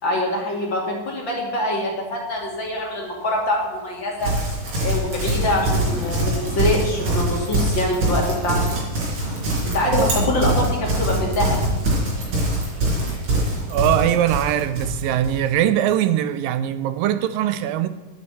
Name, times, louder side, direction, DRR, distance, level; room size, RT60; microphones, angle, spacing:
voice 1, 0.0-4.3 4.8-8.8 9.6-11.6, left 1 dB, 35° left, 2.9 m, -24 dB
Thunder, 2.4-3.6 4.2-4.3 4.5-12.3, right 1 dB, 55° left, 0.6 m, -33 dB
Livestock farm animals working animals, 4.2-15.4, right 1 dB, 55° right, 5.1 m, -23 dB
voice 2, 13.7-17.9, right 11 dB, 85° right, 2.4 m, -21 dB
9.5 x 8.8 x 8.3 m
omnidirectional pair, 4.1 m